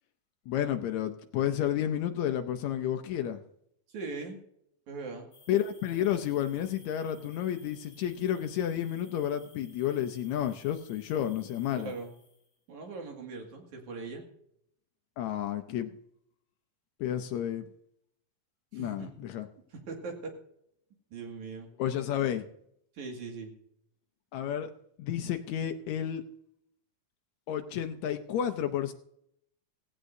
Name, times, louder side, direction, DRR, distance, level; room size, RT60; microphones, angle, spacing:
voice 1, 0.5-3.4 5.5-11.9 15.2-16.0 17.0-17.7 18.7-19.5 21.8-22.4 24.3-24.7 25.0-26.2 27.5-28.9, left 10 dB, 85° left, 7 dB, 1.6 m, -31 dB
voice 2, 3.9-4.4 4.9-5.3 11.8-12.1 12.7-14.2 18.7-19.1 19.7-20.3 21.1-21.7 22.9-23.5, right 4 dB, 60° right, 2 dB, 3.2 m, -40 dB
sound 1, 5.3-12.6, left 4 dB, 55° left, 5.2 m, -59 dB
16.5 x 16.5 x 2.6 m, 0.73 s
omnidirectional pair, 4.1 m